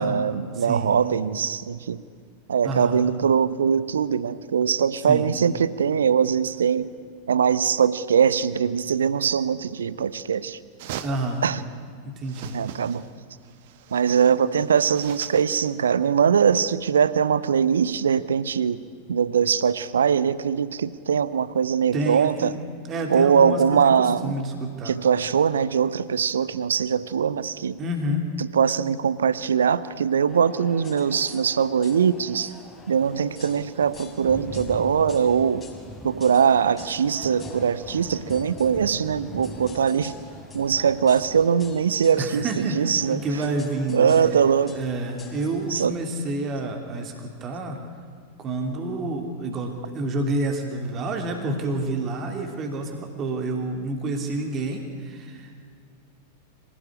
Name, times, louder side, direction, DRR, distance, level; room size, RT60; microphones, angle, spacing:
voice 1, 0.0-2.0 2.5-6.9 7.3-10.6 11.4-11.6 12.5-13.0 13.9-18.8 19.1-22.5 23.1-24.4 24.8-27.8 28.4-32.5 32.9-35.6 36.0-40.1 40.5-43.2 43.9-44.8 45.7-45.9, right 7 dB, 65° right, 17 dB, 0.8 m, -22 dB
voice 2, 0.5-0.9 2.6-3.0 5.1-5.3 10.1-10.2 11.0-11.4 12.0-12.5 21.9-22.6 22.9-25.0 27.8-28.3 40.8-40.9 42.2-44.1 44.7-47.8 48.4-55.7, right 2 dB, 30° right, 4 dB, 3.0 m, -29 dB
sound 1, 10.8-11.5 12.2-13.2 13.4-15.6, right 10 dB, 50° right, 1.2 m, -40 dB
sound 2, 30.3-45.9, left 4 dB, 20° left, 4.6 m, -47 dB
sound 3, 31.6-31.8 32.1-46.1, left 1 dB, 5° right, 2.3 m, -44 dB
25.5 x 17.5 x 9.9 m, 2.2 s
figure-of-eight pair, 90°, 0 cm